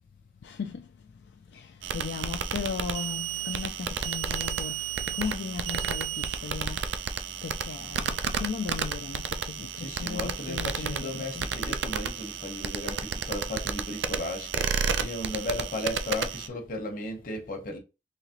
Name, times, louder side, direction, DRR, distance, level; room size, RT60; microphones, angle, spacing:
voice 1, 0.4-0.9 1.5-6.9 7.4-11.5, left 6 dB, 65° left, 0.3 m, -37 dB
sound 1, 1.8-16.5, right 6 dB, 85° right, 0.4 m, -32 dB
voice 2, 9.7-17.8, left 1 dB, 50° left, 1.0 m, -35 dB
3.9 x 2.9 x 2.9 m
head